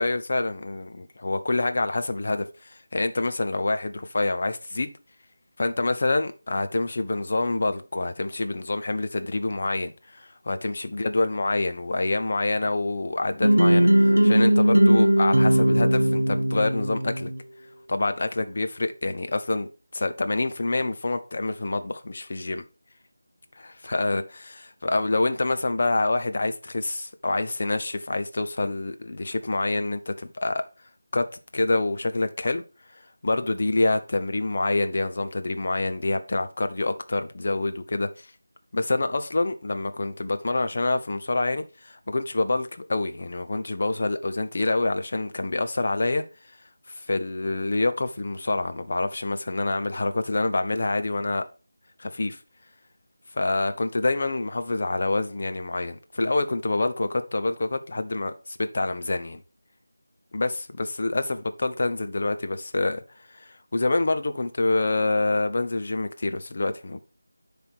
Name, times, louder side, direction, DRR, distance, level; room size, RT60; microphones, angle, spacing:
voice 1, 0.0-4.9 5.6-17.3 17.9-22.6 23.6-24.2 24.5-30.6 31.1-31.3 31.5-32.6 33.2-38.3 38.7-46.2 46.9-51.4 52.0-52.4 53.3-59.4 60.3-63.0 63.3-67.0, left 2 dB, 45° left, 0.8 m, -26 dB
sound 1, 13.4-17.4, right 1 dB, 85° right, 0.4 m, -19 dB
9.5 x 3.5 x 4.5 m
figure-of-eight pair, 165°, 0 cm